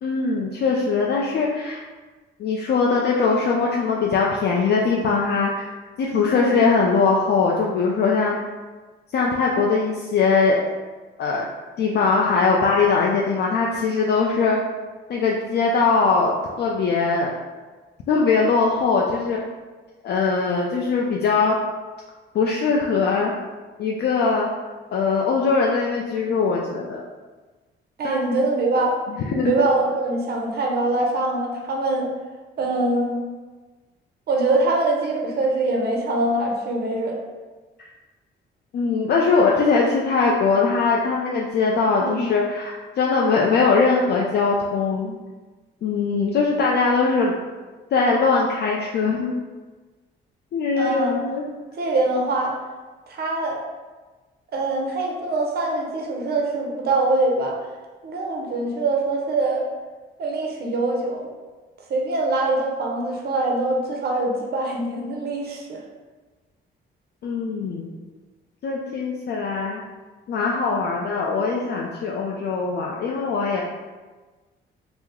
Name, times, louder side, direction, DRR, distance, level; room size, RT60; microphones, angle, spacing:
voice 1, 0.0-1.8 2.4-5.7 6.0-8.4 9.1-10.6 11.2-11.5 11.8-14.6 15.1-16.3 16.6-17.3 18.1-19.4 20.0-21.6 22.3-23.3 23.8-24.5 24.9-27.0 28.0-28.2 29.1-29.5 37.8-37.9 38.7-45.2 45.8-47.3 47.9-49.3 50.5-51.5 67.2-67.9 68.6-69.8 70.3-73.6, left 4 dB, 55° left, -2 dB, 0.4 m, -21 dB
voice 2, 6.3-6.7 28.0-29.0 29.3-32.1 32.6-33.2 34.3-37.2 42.0-42.3 50.8-51.2 51.8-52.6 53.1-53.6 54.5-57.6 58.0-59.6 60.2-61.3 61.9-65.8, right 2 dB, 50° right, 0 dB, 0.7 m, -23 dB
3.0 x 2.0 x 3.6 m, 1.3 s
cardioid pair, 90°, 20 cm